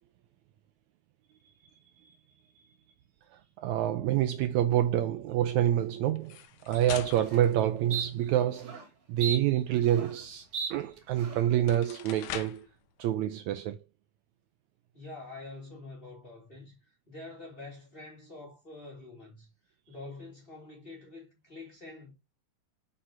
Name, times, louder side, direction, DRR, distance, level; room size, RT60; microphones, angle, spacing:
voice 1, 3.3-8.8 9.1-12.7 13.0-13.8, right 12 dB, 80° right, 1.8 m, -27 dB
sound 1, 6.2-8.6 11.0-11.1 11.5-12.7, left 11 dB, 85° left, 2.3 m, -43 dB
sound 2, 6.8-6.9 7.3-7.5 7.9-8.1 8.6-8.8 9.2-10.2 10.5-10.7 11.2-11.5, right 6 dB, 50° right, 3.0 m, -36 dB
voice 2, 14.9-19.5 19.9-22.1, left 2 dB, 20° left, 2.8 m, -46 dB
7.7 x 5.6 x 2.8 m
omnidirectional pair, 3.6 m